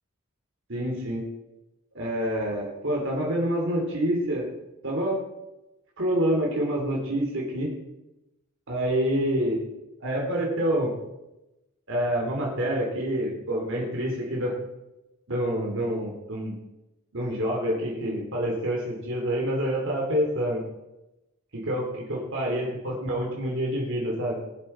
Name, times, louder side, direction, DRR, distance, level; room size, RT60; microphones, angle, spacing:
voice 1, 0.7-1.2 1.9-4.5 4.8-5.2 6.0-7.7 8.7-9.6 10.0-10.9 11.9-14.5 15.3-16.6 17.1-20.7 21.5-24.4, equal, 60° right, -2 dB, 3.0 m, -27 dB
21.0 x 7.7 x 4.4 m, 0.96 s
head